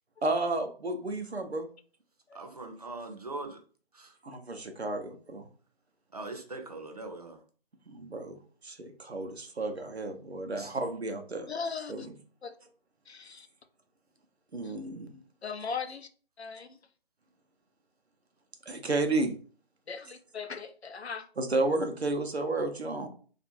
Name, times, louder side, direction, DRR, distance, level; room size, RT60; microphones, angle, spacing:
voice 1, 0.2-1.7 4.2-5.4 7.9-8.4 8.6-11.5 11.9-12.1 14.5-15.2 18.7-19.4 21.4-23.1, right 2 dB, 90° right, 5 dB, 0.7 m, -32 dB
voice 2, 2.3-3.6 3.9-4.1 6.1-7.4 10.5-10.8, right 2 dB, 40° right, 3 dB, 0.5 m, -41 dB
voice 3, 11.5-12.1 12.4-12.5 13.1-13.5 14.6-14.7 15.4-16.1 16.4-16.7 19.9-21.3, left 5 dB, 85° left, 9 dB, 0.5 m, -38 dB
2.4 x 2.4 x 2.8 m, 0.41 s
figure-of-eight pair, 150°, 31 cm